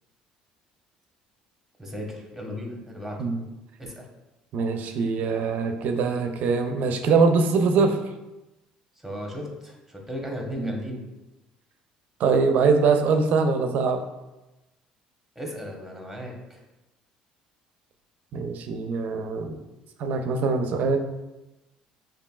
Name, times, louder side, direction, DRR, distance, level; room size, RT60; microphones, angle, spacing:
voice 1, 1.8-3.2 3.8-4.0 9.0-11.0 15.3-16.6, equal, ahead, 0 dB, 1.1 m, -35 dB
voice 2, 4.5-8.0 10.6-10.8 12.2-14.0 18.3-19.5 20.0-21.0, right 4 dB, 60° right, 6 dB, 0.5 m, -23 dB
5.0 x 2.7 x 2.3 m, 1.0 s
hypercardioid pair, 65°, 3 cm